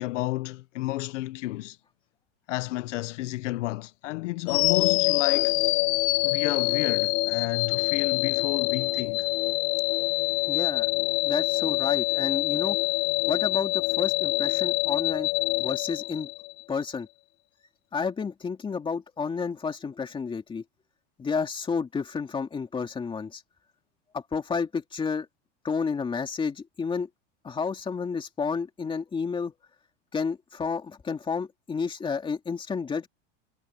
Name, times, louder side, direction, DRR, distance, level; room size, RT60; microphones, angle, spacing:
voice 1, 0.0-1.8 2.5-5.6 6.2-9.3, left 18 dB, 75° left, 0.8 m, -31 dB
sound 1, 4.5-16.6, left 24 dB, 55° left, 1.3 m, -25 dB
voice 2, 10.5-12.8 13.3-15.3 15.6-16.3 16.7-17.1 17.9-20.6 21.2-23.4 24.1-25.3 25.6-27.1 27.4-29.5 30.1-33.1, left 5 dB, 15° left, 2.5 m, -31 dB
supercardioid pair, 155°, 37 cm